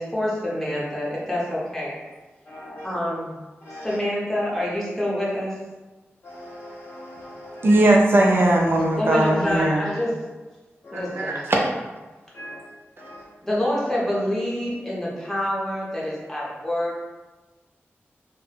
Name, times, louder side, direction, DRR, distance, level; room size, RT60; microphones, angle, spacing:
voice 1, 0.0-2.0 2.8-3.3 3.8-5.6 9.0-10.2 10.9-11.5 13.4-17.0, left 1 dB, 5° left, -6 dB, 0.9 m, -26 dB
voice 2, 2.5-2.9 3.6-4.0 6.2-7.8 10.8-11.0 12.3-12.6 13.0-13.2, equal, 60° left, -9 dB, 0.5 m, -40 dB
voice 3, 7.6-9.8 10.9-11.7, right 1 dB, 55° right, -1 dB, 0.5 m, -19 dB
2.2 x 2.0 x 3.3 m, 1.2 s
wide cardioid pair, 65°, 5 cm